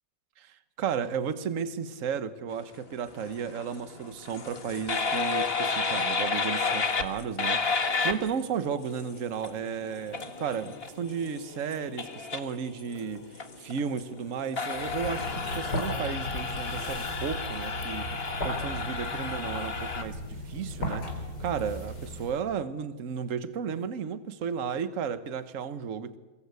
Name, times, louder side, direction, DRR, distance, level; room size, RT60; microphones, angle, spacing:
voice 1, 0.4-26.2, right 7 dB, 50° right, 13 dB, 1.4 m, -34 dB
sound 1, 3.1-20.0, left 4 dB, 35° left, 1.7 m, -32 dB
sound 2, 14.7-22.4, left 1 dB, 65° left, 4.4 m, -36 dB
23.5 x 21.0 x 8.3 m, 1.2 s
omnidirectional pair, 1.9 m